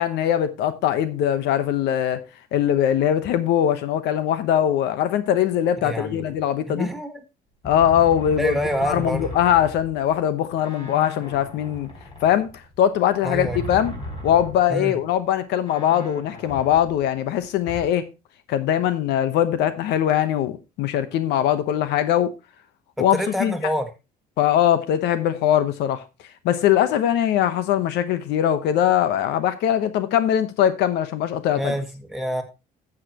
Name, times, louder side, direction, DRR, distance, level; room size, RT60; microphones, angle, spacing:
voice 1, 0.0-2.2 2.5-6.9 7.6-8.6 8.8-11.9 12.2-13.9 14.2-18.0 18.5-22.3 23.0-23.5 24.4-26.0 26.4-31.7, left 10 dB, 85° left, 1.0 m, -21 dB
voice 2, 5.8-6.3 6.7-7.2 8.4-9.4 13.2-13.6 14.7-15.0 23.0-23.9 31.6-32.4, equal, ahead, 1.8 m, -27 dB
sound 1, 7.6-10.3 10.6-14.8 15.1-15.2 15.6-17.8, left 1 dB, 30° left, 4.3 m, -37 dB
12.5 x 7.5 x 2.9 m
cardioid pair, 110°, 17 cm